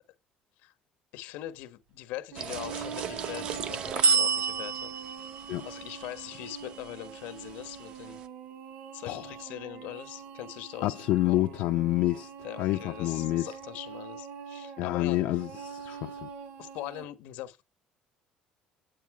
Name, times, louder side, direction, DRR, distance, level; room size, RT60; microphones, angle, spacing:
voice 1, 1.1-4.9 5.6-8.2 8.9-11.4 12.4-15.2 16.6-17.6, left 15 dB, 85° left, 1.2 m, -41 dB
sound 1, 2.3-17.0, right 6 dB, 65° right, 3.7 m, -44 dB
sound 2, 2.4-6.9, right 4 dB, 40° right, 0.7 m, -30 dB
voice 2, 10.8-12.3 12.6-13.5 14.8-16.3, left 17 dB, 65° left, 0.6 m, -28 dB
9.1 x 8.9 x 4.8 m
cardioid pair, 175°, 3 cm